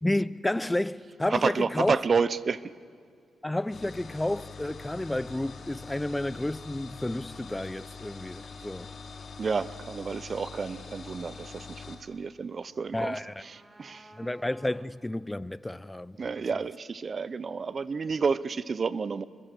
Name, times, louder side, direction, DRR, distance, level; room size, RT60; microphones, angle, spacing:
voice 1, 0.0-2.0 3.4-8.9 12.9-13.3 14.2-16.3, left 1 dB, 10° left, 0.6 m, -31 dB
voice 2, 1.3-2.6 9.4-14.1 16.2-19.2, right 5 dB, 45° right, 0.8 m, -30 dB
sound 1, 3.7-12.0, left 5 dB, 50° left, 2.7 m, -44 dB
sound 2, 12.9-15.2, right 1 dB, 15° right, 2.3 m, -54 dB
27.5 x 23.0 x 6.7 m
cardioid pair, 90°, 0 cm